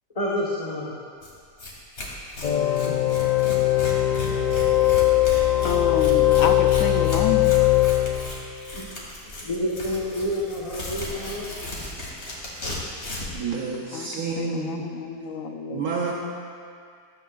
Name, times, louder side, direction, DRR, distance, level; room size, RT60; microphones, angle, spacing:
voice 1, 0.1-0.9 8.7-8.8 9.4-11.5, left 1 dB, 25° left, -7 dB, 1.4 m, -28 dB
Tearing, 1.2-1.3 1.6-1.7 2.0-13.4, left 2 dB, 45° left, 2.4 m, -36 dB
sound 1, 2.4-8.6, left 14 dB, 80° left, 0.4 m, -20 dB
voice 2, 5.6-7.6 13.9-15.9, left 5 dB, 60° left, 5 dB, 1.1 m, -29 dB
voice 3, 13.3-15.0 15.7-16.1, right 5 dB, 70° right, -2 dB, 1.5 m, -29 dB
15.0 x 13.5 x 2.6 m, 2.2 s
omnidirectional pair, 1.7 m